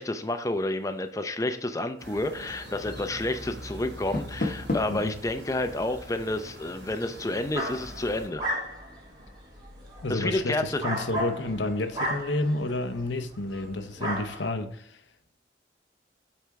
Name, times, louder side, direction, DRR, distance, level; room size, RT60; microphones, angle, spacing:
voice 1, 0.0-8.4 10.1-10.8, left 2 dB, 20° left, 0.5 m, -30 dB
sound 1, 2.0-8.3, equal, 75° right, 3.0 m, -43 dB
Door, 3.9-5.1, left 2 dB, 50° left, 1.0 m, -31 dB
sound 2, 7.5-13.0 13.5-13.7 14.0-14.5, equal, 25° right, 2.0 m, -34 dB
voice 2, 10.0-15.0, left 2 dB, 85° left, 0.8 m, -30 dB
8.4 x 4.4 x 3.5 m
head